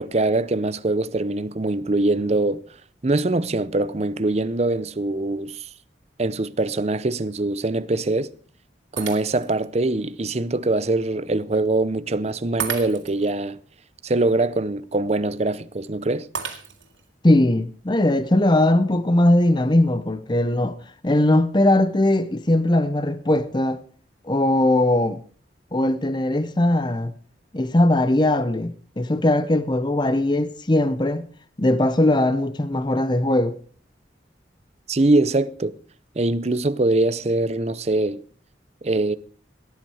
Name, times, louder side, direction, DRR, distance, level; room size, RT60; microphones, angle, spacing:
voice 1, 0.0-2.6 3.0-5.7 6.2-8.3 8.9-13.6 14.0-16.3 34.9-35.7 36.2-38.2 38.8-39.2, right 2 dB, 35° right, 0.6 m, -23 dB
Shatter, 9.0-9.7 10.2-10.3 12.6-13.3 16.3-17.1, right 7 dB, 85° right, 2.7 m, -32 dB
voice 2, 17.2-20.8 21.0-23.8 24.2-25.2 25.7-27.1 27.5-31.3 31.6-33.6, left 1 dB, 25° left, 0.7 m, -20 dB
18.0 x 10.5 x 4.8 m
head